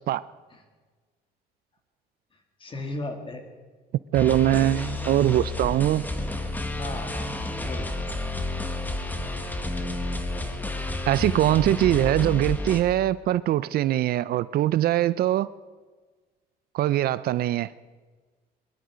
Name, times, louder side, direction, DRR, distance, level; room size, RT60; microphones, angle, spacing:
voice 1, 2.3-3.4 6.8-7.3 7.6-7.9, left 2 dB, 30° left, 5 dB, 2.5 m, -36 dB
sound 1, 4.1-12.8, left 2 dB, 10° left, 1.6 m, -30 dB
voice 2, 4.1-6.1 11.1-15.5 16.7-17.7, right 13 dB, 65° right, 17 dB, 0.5 m, -22 dB
21.0 x 12.0 x 5.1 m, 1.4 s
cardioid pair, 110°, 17 cm